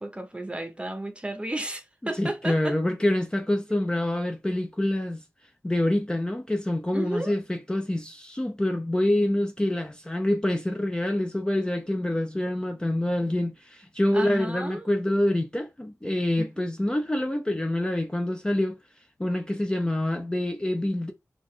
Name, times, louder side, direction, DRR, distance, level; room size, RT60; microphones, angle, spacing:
voice 1, 0.0-2.8 6.9-7.4 14.1-14.9 16.4-16.7, right 1 dB, 20° right, 0.7 m, -33 dB
voice 2, 2.2-5.2 5.6-18.8 19.2-21.1, left 1 dB, 15° left, 0.4 m, -26 dB
3.8 x 2.4 x 3.1 m
wide cardioid pair, 95°, 6 cm